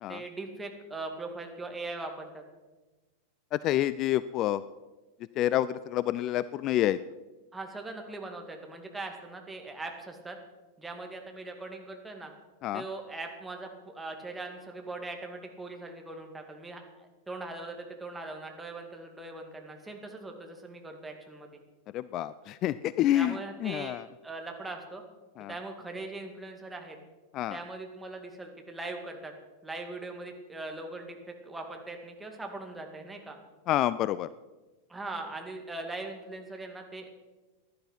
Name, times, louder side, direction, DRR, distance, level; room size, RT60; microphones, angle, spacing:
voice 1, 0.1-2.4 7.5-10.4 10.8-12.3 12.7-13.7 13.9-21.6 23.1-24.0 24.2-25.0 25.5-27.0 27.5-29.3 29.6-31.2 31.4-33.4 34.9-37.1, right 2 dB, 10° right, 3 dB, 2.2 m, -40 dB
voice 2, 3.5-4.6 5.4-7.0 12.6-12.8 21.9-24.1 25.4-25.5 27.3-27.6 33.7-34.3, left 13 dB, 35° left, 17 dB, 0.3 m, -28 dB
15.5 x 11.5 x 5.7 m, 1.2 s
figure-of-eight pair, 90°, 0 cm